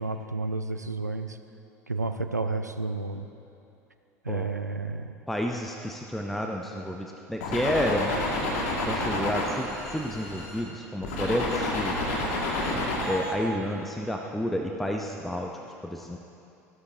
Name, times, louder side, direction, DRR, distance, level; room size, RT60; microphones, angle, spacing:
voice 1, 0.0-1.4 1.9-3.3 4.2-5.1, right 3 dB, 90° right, 9 dB, 0.4 m, -31 dB
voice 2, 5.3-8.1 8.8-12.0 13.1-15.5 15.8-16.2, equal, ahead, 2 dB, 0.6 m, -30 dB
sound 1, 7.4-10.6 11.0-13.3, left 2 dB, 60° left, 1.9 m, -29 dB
14.0 x 13.0 x 2.7 m, 2.8 s
figure-of-eight pair, 70°, 9 cm